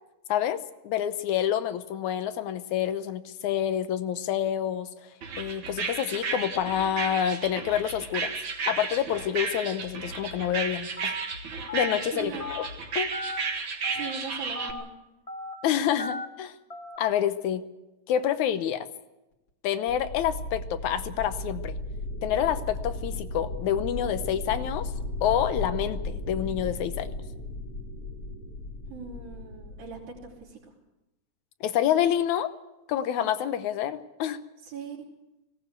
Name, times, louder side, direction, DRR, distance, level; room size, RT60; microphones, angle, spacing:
voice 1, 0.3-4.9 5.4-8.3 8.7-11.2 11.7-12.6 13.0-13.1 15.6-16.6 17.0-17.6 18.1-18.9 19.6-21.8 22.2-24.9 25.2-27.1 31.6-32.5 32.9-34.4, left 10 dB, 70° left, 11 dB, 2.1 m, -27 dB
sound 1, 5.2-14.7, right 5 dB, 45° right, 2.0 m, -33 dB
Telephone, 11.0-11.2 11.7-11.9 12.4-12.7 13.1-13.4 13.8-14.1 14.5-14.8 15.3-15.5 16.0-16.3 16.7-17.0, left 2 dB, 25° left, 0.7 m, -36 dB
voice 2, 12.1-12.5 13.9-14.9 28.9-30.7 34.6-35.0, right 5 dB, 60° right, -5 dB, 4.6 m, -40 dB
sound 2, 19.9-30.5, left 2 dB, 45° left, 2.8 m, -35 dB
19.0 x 17.0 x 8.1 m, 0.98 s
omnidirectional pair, 3.8 m